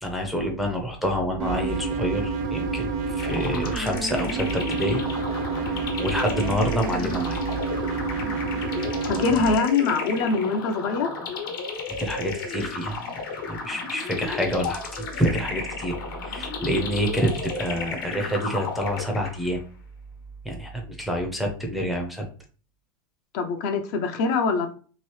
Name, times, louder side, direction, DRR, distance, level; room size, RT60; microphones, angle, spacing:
voice 1, 0.0-5.0 5.5-7.4 11.9-13.1 13.5-16.0 16.2-19.6 20.4-22.2, equal, ahead, 0 dB, 0.5 m, -27 dB
sound 1, 1.4-9.6, right 4 dB, 55° right, 0.5 m, -29 dB
sound 2, 3.2-19.6, left 4 dB, 70° left, 1.1 m, -34 dB
voice 2, 9.0-11.1 23.3-24.7, left 4 dB, 50° left, 6 dB, 0.5 m, -23 dB
2.9 x 2.7 x 3.1 m, 0.40 s
supercardioid pair, 145°, 12 cm